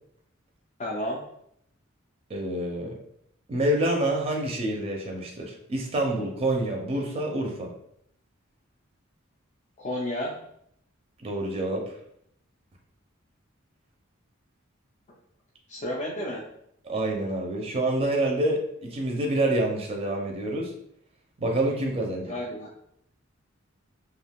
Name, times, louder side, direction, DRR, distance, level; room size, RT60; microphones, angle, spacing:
voice 1, 0.8-1.2 9.8-10.4 15.7-16.5 22.2-22.7, left 1 dB, 35° left, -4 dB, 0.4 m, -31 dB
voice 2, 2.3-3.0 3.5-7.7 11.2-11.9 16.8-20.7 21.4-22.3, right 1 dB, 30° right, 1 dB, 0.5 m, -27 dB
2.4 x 2.2 x 3.4 m, 0.72 s
head